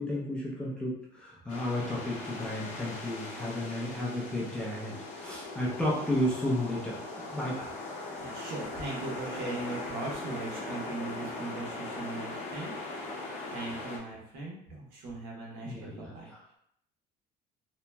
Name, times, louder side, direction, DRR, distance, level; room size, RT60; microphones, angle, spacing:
voice 1, 0.0-7.0 7.3-7.7 15.6-16.6, left 1 dB, 5° left, -5 dB, 0.5 m, -33 dB
sound 1, 1.5-14.0, left 2 dB, 50° left, 0.7 m, -40 dB
voice 2, 8.2-13.0 13.5-16.3, right 2 dB, 80° right, -3 dB, 1.1 m, -39 dB
2.9 x 2.7 x 2.2 m, 0.74 s
cardioid pair, 170°, 15 cm